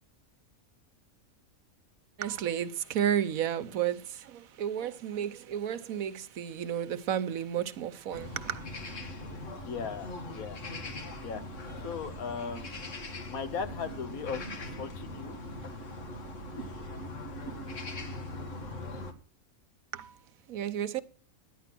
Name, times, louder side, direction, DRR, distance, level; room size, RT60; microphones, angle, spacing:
voice 1, 2.2-8.6 19.9-20.2 20.5-21.0, right 9 dB, 85° right, 1.3 m, -32 dB
sound 1, 8.1-19.1, left 1 dB, 60° left, 2.0 m, -41 dB
voice 2, 9.6-10.6 11.2-11.4 11.8-12.9 13.3-15.4, left 6 dB, 85° left, 1.6 m, -38 dB
10.5 x 10.0 x 6.0 m
omnidirectional pair, 1.4 m